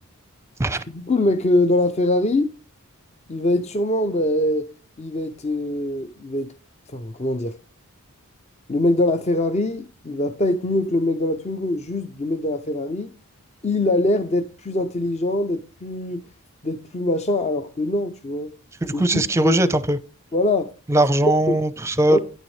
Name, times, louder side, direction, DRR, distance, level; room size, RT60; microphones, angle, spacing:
voice 1, 0.9-2.5 3.3-4.7 5.0-6.5 6.9-7.6 8.7-13.1 13.6-16.2 16.6-18.5 18.9-19.6 20.3-20.7 21.3-21.6 22.1-22.2, left 1 dB, 30° left, 0.6 m, -23 dB
voice 2, 18.8-20.0 20.9-22.2, right 1 dB, 10° right, 0.6 m, -20 dB
9.9 x 9.0 x 3.2 m
head